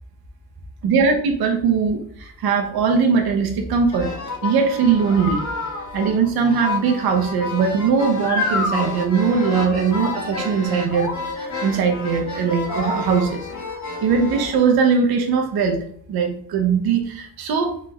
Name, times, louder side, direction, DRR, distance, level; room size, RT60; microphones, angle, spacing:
voice 1, 0.8-4.1 4.4-5.4 5.9-13.5 14.0-15.8 16.1-17.7, right 5 dB, 75° right, 3 dB, 0.8 m, -20 dB
sound 1, 3.9-14.5, left 3 dB, 50° left, 1.3 m, -29 dB
3.9 x 3.2 x 3.0 m, 0.65 s
cardioid pair, 85°, 37 cm